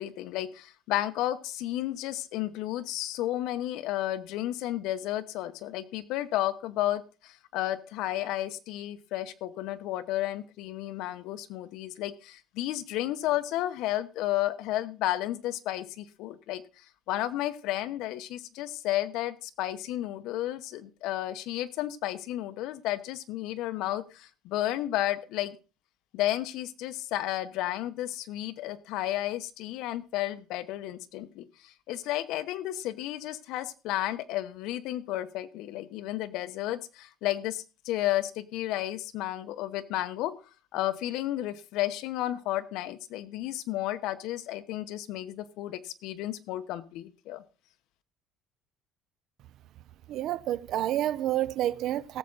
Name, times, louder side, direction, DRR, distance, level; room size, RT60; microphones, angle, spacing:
voice 1, 0.0-16.7 17.1-25.6 26.1-40.4 40.7-47.4, left 14 dB, 75° left, 1.0 m, -32 dB
voice 2, 50.1-52.2, right 13 dB, 60° right, 0.6 m, -29 dB
17.5 x 7.6 x 4.0 m
cardioid pair, 150°, 0 cm